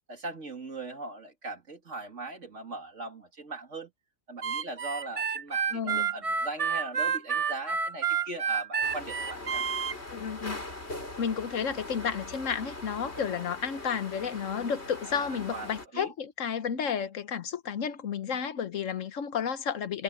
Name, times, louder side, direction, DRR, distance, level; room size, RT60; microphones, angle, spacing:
voice 1, 0.1-3.9 4.3-9.7 15.0-16.1, right 2 dB, 60° right, 3.0 m, -40 dB
Harmonica, 4.4-9.9, right 6 dB, 35° right, 0.6 m, -29 dB
voice 2, 5.7-6.1 10.1-10.6 11.2-20.0, left 7 dB, 65° left, 1.2 m, -32 dB
sound 1, 8.8-15.9, left 2 dB, 50° left, 5.4 m, -41 dB
omnidirectional pair, 1.5 m